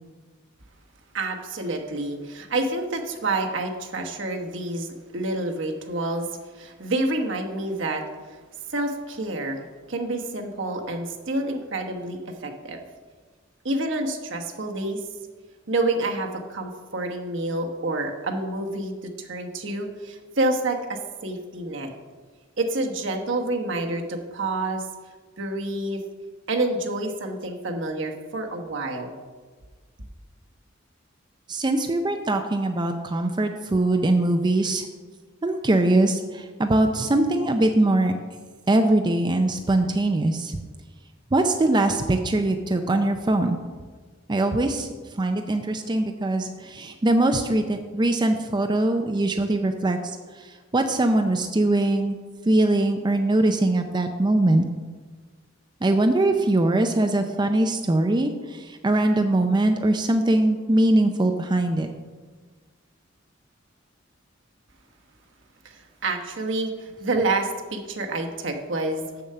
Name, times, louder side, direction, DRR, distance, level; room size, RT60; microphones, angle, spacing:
voice 1, 1.1-6.3 6.5-8.0 8.3-8.4 8.7-12.8 13.6-15.0 15.7-21.9 22.6-24.8 25.4-26.0 26.5-29.1 65.6-69.0, right 2 dB, 65° right, 3 dB, 1.2 m, -28 dB
voice 2, 31.5-34.9 35.4-38.1 38.7-40.6 41.3-43.6 44.3-44.9 45.1-52.2 52.4-54.6 55.8-61.9, right 2 dB, 20° right, 5 dB, 0.5 m, -22 dB
7.1 x 7.0 x 6.6 m, 1.4 s
head